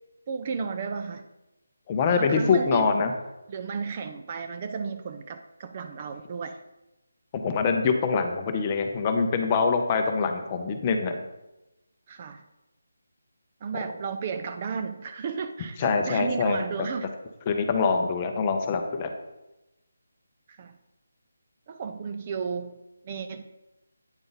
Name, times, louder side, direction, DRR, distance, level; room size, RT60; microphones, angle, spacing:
voice 1, 0.3-1.3 2.2-3.0 3.5-6.6 12.1-12.4 13.6-17.1 20.5-20.8 21.7-22.8 23.0-23.5, right 5 dB, 30° right, 7 dB, 0.3 m, -33 dB
voice 2, 1.9-3.1 7.3-11.2 15.8-16.9 17.5-19.1, left 5 dB, 20° left, 5 dB, 0.6 m, -24 dB
8.9 x 3.9 x 3.9 m, 0.98 s
figure-of-eight pair, 170°, 0 cm